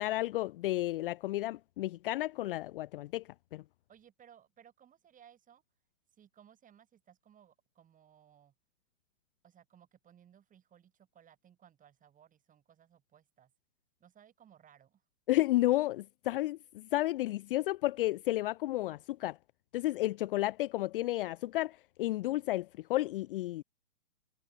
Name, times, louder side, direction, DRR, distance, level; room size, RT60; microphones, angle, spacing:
voice 1, 0.0-3.2 3.5-3.6 15.3-19.4 19.7-23.6, left 16 dB, 40° left, 0.7 m, -32 dB
voice 2, 3.9-5.6 6.2-8.5 9.4-13.5 14.0-15.0, right 9 dB, 20° right, 5.8 m, -61 dB
hypercardioid pair, 125°, 43 cm